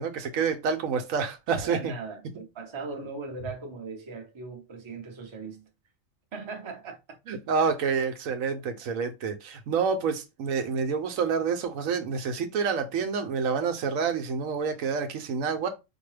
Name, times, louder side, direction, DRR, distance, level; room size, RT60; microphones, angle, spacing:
voice 1, 0.0-1.9 7.3-15.7, right 5 dB, 85° right, 1.1 m, -28 dB
voice 2, 1.6-5.7 6.3-7.2, right 4 dB, 30° right, 0.7 m, -39 dB
4.6 x 2.2 x 3.3 m
omnidirectional pair, 1.4 m